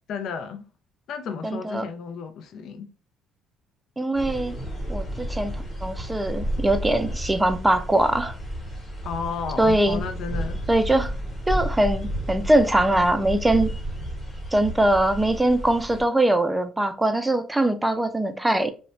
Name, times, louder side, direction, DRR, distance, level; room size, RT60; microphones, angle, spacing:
voice 1, 0.1-0.6 1.1-2.9 9.0-10.6, left 6 dB, 60° left, 0.4 m, -33 dB
voice 2, 1.4-1.8 4.0-4.6 4.9-8.4 9.6-10.0 10.7-11.1 11.5-13.7 14.5-18.7, right 1 dB, 10° right, 0.4 m, -22 dB
sound 1, 4.1-16.0, right 1 dB, 15° left, 1.1 m, -32 dB
2.5 x 2.1 x 3.1 m
cardioid pair, 95°, 0 cm